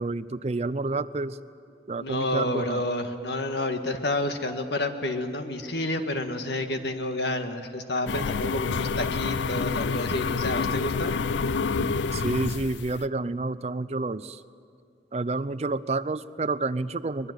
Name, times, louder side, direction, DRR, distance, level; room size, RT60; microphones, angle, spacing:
voice 1, 0.0-1.4 1.9-2.8 11.8-14.4 15.1-17.3, right 3 dB, 35° right, 15 dB, 0.5 m, -29 dB
voice 2, 2.0-11.2, left 1 dB, 75° left, 6 dB, 1.7 m, -29 dB
sound 1, 8.1-13.1, left 5 dB, 90° left, 0.5 m, -28 dB
23.0 x 21.0 x 8.0 m, 2.5 s
head